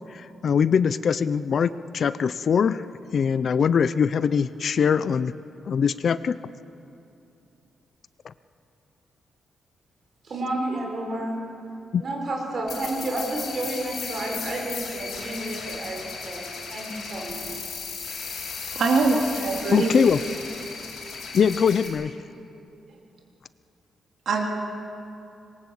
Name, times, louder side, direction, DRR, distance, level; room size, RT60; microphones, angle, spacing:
voice 1, 0.1-2.8 3.1-5.3 5.7-6.4 8.2-8.3 11.9-12.0 19.7-20.2 21.3-22.1, left 7 dB, 45° left, 14 dB, 0.5 m, -22 dB
voice 2, 10.2-11.5 12.0-17.5 18.6-18.7, right 1 dB, 40° right, 0 dB, 6.0 m, -31 dB
sound 1, 12.7-21.9, left 5 dB, 65° left, 7.3 m, -36 dB
voice 3, 18.7-19.9 24.2-24.5, right 3 dB, 60° right, 1 dB, 3.1 m, -22 dB
26.0 x 22.0 x 8.0 m, 2.7 s
wide cardioid pair, 165°, 0 cm